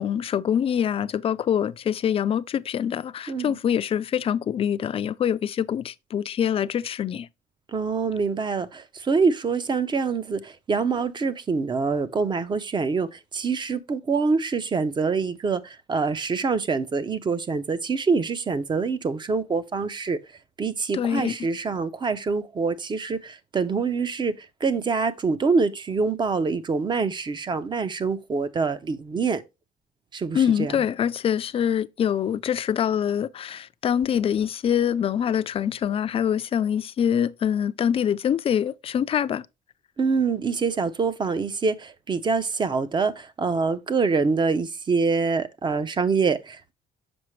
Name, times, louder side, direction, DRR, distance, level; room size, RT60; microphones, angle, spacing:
voice 1, 0.0-7.3 20.9-21.4 30.3-39.5, left 9 dB, 35° left, 0.4 m, -25 dB
voice 2, 3.3-3.6 7.7-20.2 20.6-24.3 24.6-29.4 30.1-30.7 40.0-46.7, right 4 dB, 25° right, 0.6 m, -25 dB
6.1 x 5.0 x 3.1 m
cardioid pair, 110°, 17 cm